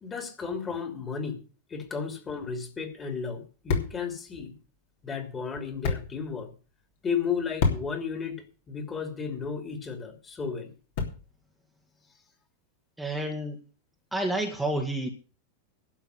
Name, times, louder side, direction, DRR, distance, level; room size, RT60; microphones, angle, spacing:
voice 1, 0.0-1.4 1.7-4.5 5.0-6.5 7.0-10.7, left 6 dB, 20° left, 6 dB, 2.9 m, -33 dB
sound 1, 2.4-11.5, left 4 dB, 50° left, 3.1 m, -36 dB
voice 2, 13.0-13.6 14.1-15.1, right 1 dB, 5° right, 1 dB, 1.8 m, -29 dB
12.0 x 7.1 x 7.9 m, 0.36 s
figure-of-eight pair, 90°, 0 cm